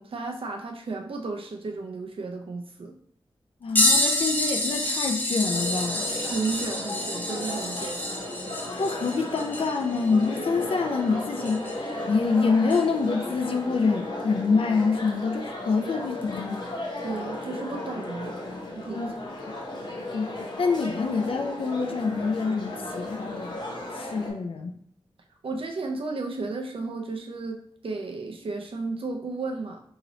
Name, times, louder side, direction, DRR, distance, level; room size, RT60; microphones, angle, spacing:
voice 1, 0.0-2.9 6.2-8.0 17.0-18.3 18.7-19.1 25.4-29.8, right 3 dB, 70° right, 2 dB, 0.6 m, -33 dB
voice 2, 3.6-6.0 8.8-11.8 12.1-16.6 18.9-19.1 20.1-23.6 23.9-24.8, left 4 dB, 70° left, 3 dB, 0.4 m, -26 dB
sound 1, 3.8-12.0 12.7-12.8 15.1-15.2 16.2-16.4 17.4-17.5, left 1 dB, 20° left, 0.8 m, -28 dB
sound 2, 5.4-24.3, left 1 dB, 50° left, 0.9 m, -35 dB
3.0 x 2.9 x 4.0 m, 0.66 s
wide cardioid pair, 105°, 10 cm